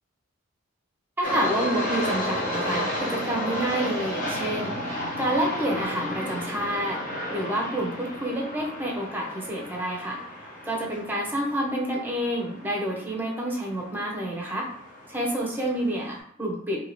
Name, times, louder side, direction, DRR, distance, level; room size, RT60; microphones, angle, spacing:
sound 1, 1.2-16.2, left 1 dB, 40° left, 1.1 m, -33 dB
voice 1, 1.2-7.0 7.3-10.2 10.7-14.7 15.1-16.9, right 1 dB, 10° right, -1 dB, 0.7 m, -28 dB
2.8 x 2.7 x 3.0 m, 0.63 s
head